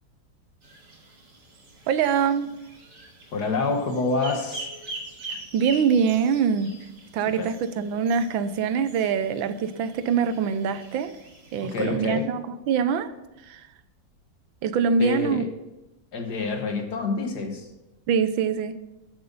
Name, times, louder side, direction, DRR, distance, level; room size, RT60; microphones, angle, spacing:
sound 1, 0.6-11.9, right 2 dB, 60° right, 3.1 m, -43 dB
voice 1, 1.9-2.5 5.3-6.7 7.1-11.1 11.5-13.1 13.5-13.7 14.6-15.4 18.1-18.8, right 6 dB, 80° right, 12 dB, 1.5 m, -24 dB
voice 2, 3.3-4.7 7.4-7.5 11.6-12.3 15.0-15.5 16.1-17.7, left 4 dB, 55° left, 5 dB, 1.9 m, -27 dB
13.5 x 8.0 x 5.4 m, 0.98 s
omnidirectional pair, 2.2 m